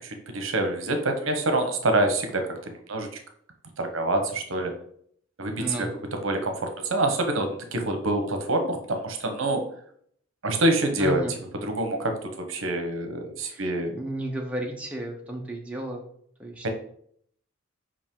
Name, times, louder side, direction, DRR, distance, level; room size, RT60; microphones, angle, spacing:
voice 1, 0.0-3.1 3.8-4.7 5.4-9.6 10.4-11.2 11.6-13.9 16.6-16.7, right 2 dB, 75° right, 6 dB, 0.9 m, -26 dB
voice 2, 5.6-5.9 11.0-11.4 13.4-16.0 16.4-16.7, right 1 dB, 5° right, 0 dB, 0.7 m, -33 dB
5.1 x 5.1 x 3.7 m, 0.65 s
head